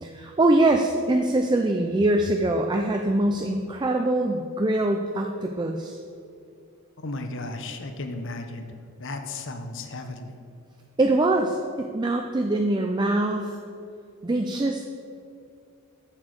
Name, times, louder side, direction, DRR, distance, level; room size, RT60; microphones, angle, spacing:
voice 1, 0.0-6.0 11.0-13.6 14.2-14.9, right 2 dB, 20° right, 3 dB, 0.4 m, -23 dB
voice 2, 7.0-8.7 9.0-10.4, left 2 dB, 55° left, 6 dB, 0.8 m, -34 dB
7.3 x 6.9 x 6.4 m, 2.5 s
head